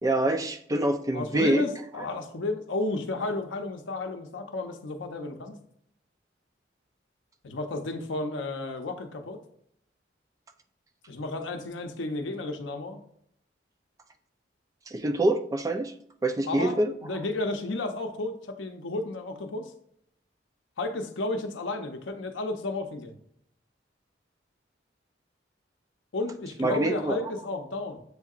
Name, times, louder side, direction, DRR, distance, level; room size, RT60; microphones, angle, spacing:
voice 1, 0.0-1.7 14.9-15.9 16.2-16.9 26.6-27.2, right 1 dB, 20° right, 8 dB, 0.3 m, -25 dB
voice 2, 1.1-5.6 7.4-9.4 11.1-13.0 16.5-19.7 20.8-23.2 26.1-28.0, left 2 dB, 90° left, 5 dB, 0.6 m, -32 dB
7.8 x 2.7 x 2.4 m, 0.70 s
head